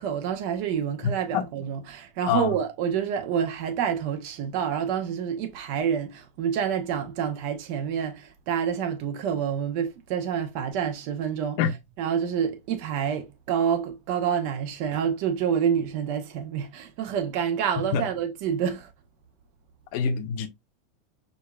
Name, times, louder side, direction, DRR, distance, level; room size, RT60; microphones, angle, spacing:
voice 1, 0.0-11.6 12.0-18.9, right 8 dB, 50° right, 0.8 m, -28 dB
voice 2, 1.0-1.4 2.3-2.5 11.6-11.7 17.9-18.0 19.9-20.5, left 7 dB, 50° left, 0.7 m, -25 dB
4.9 x 2.5 x 2.3 m
supercardioid pair, 155°, 0 cm